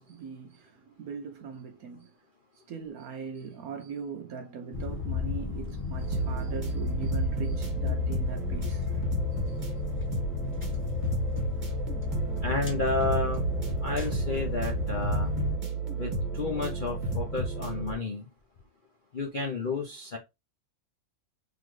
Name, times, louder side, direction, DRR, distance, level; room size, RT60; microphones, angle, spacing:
voice 1, 0.0-2.1 2.5-9.0 9.5-9.6, right 6 dB, 65° right, 0.9 m, -40 dB
sound 1, 4.7-15.6, left 7 dB, 10° left, 0.6 m, -33 dB
sound 2, 6.0-17.9, right 3 dB, 30° right, 1.0 m, -32 dB
voice 2, 12.4-13.4 13.8-15.3 15.9-18.2 19.1-20.2, left 3 dB, 55° left, 0.5 m, -31 dB
3.8 x 3.2 x 3.1 m
omnidirectional pair, 2.0 m